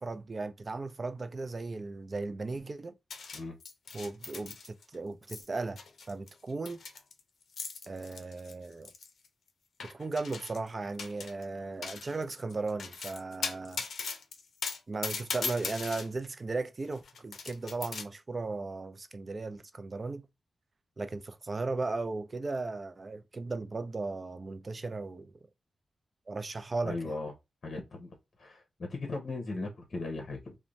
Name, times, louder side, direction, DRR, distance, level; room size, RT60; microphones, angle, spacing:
voice 1, 0.0-2.9 3.9-5.8 6.1-6.8 7.9-8.9 9.8-13.8 14.9-20.3 21.0-25.3 26.3-27.1, right 3 dB, 35° right, 0.4 m, -36 dB
sound 1, 3.1-5.0 5.2-5.5 5.8-9.3 9.8-10.7 11.0-11.4 11.8-16.1 16.8-18.0, left 5 dB, 85° left, 0.5 m, -39 dB
voice 2, 26.8-27.3 27.6-28.1 28.4-30.6, left 3 dB, 50° left, 0.7 m, -37 dB
2.6 x 2.1 x 3.0 m
wide cardioid pair, 105°, 0 cm